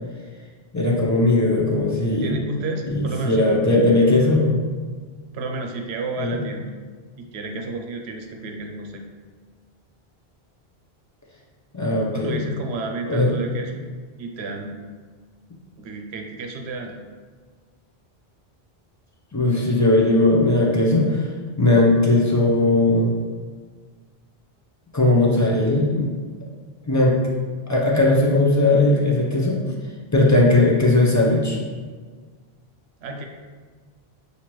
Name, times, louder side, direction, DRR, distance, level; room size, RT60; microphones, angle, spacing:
voice 1, 0.7-2.3 2.9-4.6 6.2-6.3 11.7-12.4 13.1-13.3 19.3-21.3 21.6-23.2 24.9-26.2 26.9-27.2 27.7-29.6 30.1-31.6, left 2 dB, 25° left, -3 dB, 0.5 m, -18 dB
voice 2, 2.2-3.6 5.3-6.7 7.2-9.0 12.1-13.9 14.2-14.7 15.8-17.0 33.0-33.2, right 3 dB, 90° right, 3 dB, 0.8 m, -31 dB
5.9 x 2.7 x 3.0 m, 1.5 s
omnidirectional pair, 1.0 m